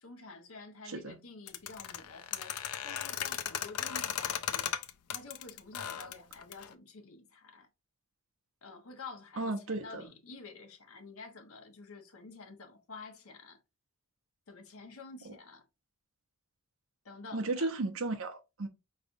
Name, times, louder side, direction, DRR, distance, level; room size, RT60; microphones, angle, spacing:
voice 1, 0.0-4.8 5.1-7.7 8.6-13.6 14.5-15.6 17.0-17.7, left 4 dB, 65° left, 1.1 m, -49 dB
voice 2, 0.9-1.2 9.4-10.0 17.3-18.7, right 2 dB, 65° right, 0.9 m, -34 dB
sound 1, 1.5-6.7, left 10 dB, 90° left, 0.5 m, -36 dB
5.0 x 3.3 x 2.6 m
head